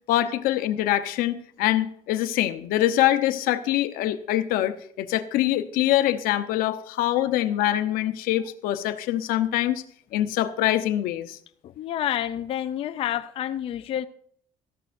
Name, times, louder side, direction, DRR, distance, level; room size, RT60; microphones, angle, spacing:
voice 1, 0.1-9.8 10.1-11.4, left 13 dB, 85° left, 0.9 m, -24 dB
voice 2, 11.6-14.1, left 11 dB, 40° left, 0.4 m, -29 dB
18.0 x 13.5 x 2.6 m
cardioid pair, 165°, 15 cm